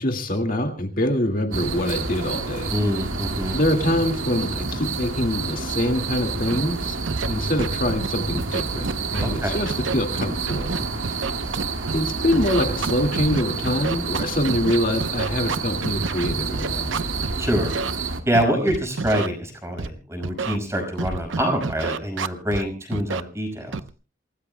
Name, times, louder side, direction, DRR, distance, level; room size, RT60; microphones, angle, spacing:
voice 1, 0.0-2.7 3.5-6.9 7.3-10.8 11.9-17.1, left 1 dB, 45° left, 3 dB, 2.0 m, -25 dB
sound 1, 1.5-18.2, right 4 dB, 90° right, 2.1 m, -29 dB
voice 2, 2.7-3.6 9.2-9.6 17.4-17.8 18.3-23.8, equal, 15° right, 4 dB, 5.6 m, -25 dB
Scratching (performance technique), 6.5-6.6 7.1-7.3 7.6-8.1 8.4-9.4 9.7-12.0 12.3-17.4 17.6-17.9 18.3-19.3 19.8-19.9 20.2-20.6 21.0-22.6 22.9-23.2 23.7-23.9, right 4 dB, 70° right, 0.8 m, -28 dB
28.0 x 18.5 x 2.2 m, 0.35 s
head